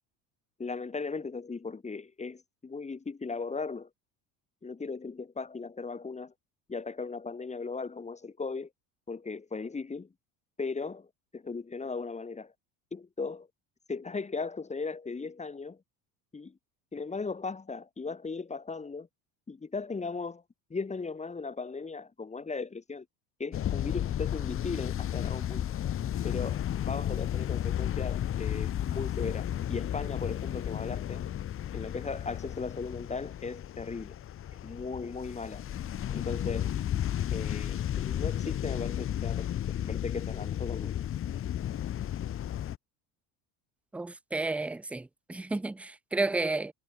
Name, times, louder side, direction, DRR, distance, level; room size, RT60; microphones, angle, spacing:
voice 1, 0.6-3.9 4.6-6.3 6.7-8.7 9.1-10.1 10.6-12.5 12.9-13.5 13.9-15.8 16.3-16.6 16.9-19.1 19.5-20.4 20.7-23.0 23.4-25.7 26.2-31.2 31.7-34.1 34.6-35.6 36.1-36.7 37.3-41.1, left 4 dB, 15° left, 4.7 m, -37 dB
sound 1, 23.5-42.8, left 11 dB, 35° left, 1.1 m, -33 dB
voice 2, 43.9-46.7, right 2 dB, 5° right, 0.4 m, -32 dB
supercardioid pair, 120°, 38 cm